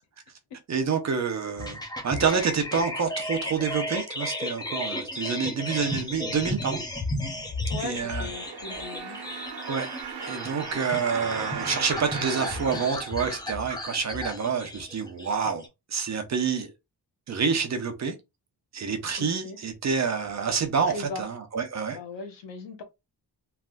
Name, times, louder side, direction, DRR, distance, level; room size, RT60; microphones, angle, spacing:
voice 1, 0.7-6.8 7.8-8.3 9.7-9.9 10.2-15.6 15.9-16.7 17.3-18.1 18.7-22.0, right 6 dB, 40° right, 0.6 m, -28 dB
sound 1, 1.6-15.7, left 1 dB, 10° left, 0.4 m, -34 dB
voice 2, 7.7-9.4 19.2-19.6 20.9-21.2 21.9-22.8, left 4 dB, 85° left, 0.9 m, -38 dB
sound 2, 7.8-13.7 14.3-14.4, right 6 dB, 65° right, 0.9 m, -37 dB
3.3 x 2.5 x 2.2 m
wide cardioid pair, 160°, 42 cm